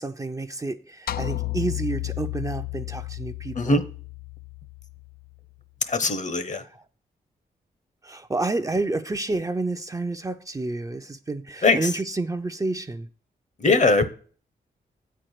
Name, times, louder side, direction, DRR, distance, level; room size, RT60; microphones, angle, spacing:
voice 1, 0.0-3.8 8.0-13.1, right 2 dB, 20° right, 0.5 m, -29 dB
sound 1, 1.1-5.5, left 17 dB, 65° left, 0.4 m, -33 dB
voice 2, 5.9-6.6 11.6-11.9 13.6-14.1, left 3 dB, 45° left, 0.9 m, -21 dB
8.4 x 4.5 x 6.4 m
cardioid pair, 70°, 17 cm